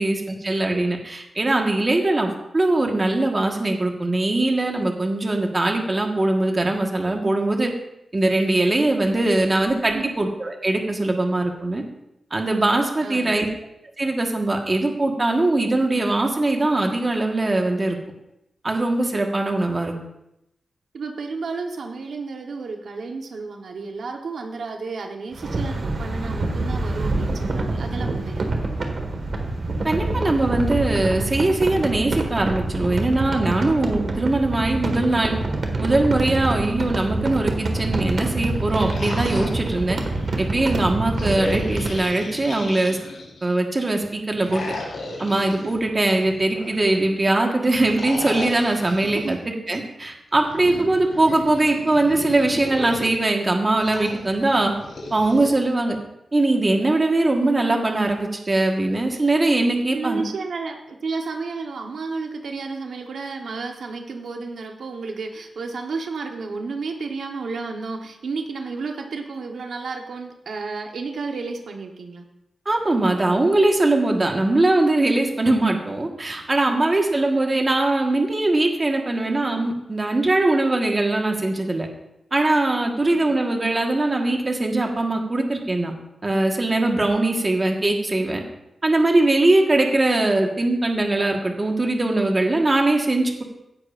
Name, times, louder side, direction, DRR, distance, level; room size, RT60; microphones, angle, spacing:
voice 1, 0.0-7.7 8.1-11.8 12.3-13.5 14.0-18.0 18.6-19.9 29.8-35.4 35.8-40.0 40.4-43.0 43.4-44.6 45.2-54.7 55.1-56.0 56.3-60.2 72.6-81.9 82.3-85.9 86.2-88.4 88.8-93.4, right 2 dB, 25° right, 2 dB, 1.4 m, -21 dB
voice 2, 13.0-13.4 20.9-28.5 49.1-49.4 49.7-49.8 50.7-50.9 59.9-72.3 76.7-76.9 83.2-83.4, right 4 dB, 75° right, 3 dB, 1.1 m, -32 dB
sound 1, 25.3-42.0, right 2 dB, 50° right, 1.7 m, -26 dB
sound 2, 38.5-40.3 41.1-43.5 44.4-46.9 47.7-49.3 50.3-53.1 53.8-55.5, left 2 dB, 75° left, 4.0 m, -35 dB
16.0 x 10.5 x 2.5 m, 0.86 s
wide cardioid pair, 150°, 0 cm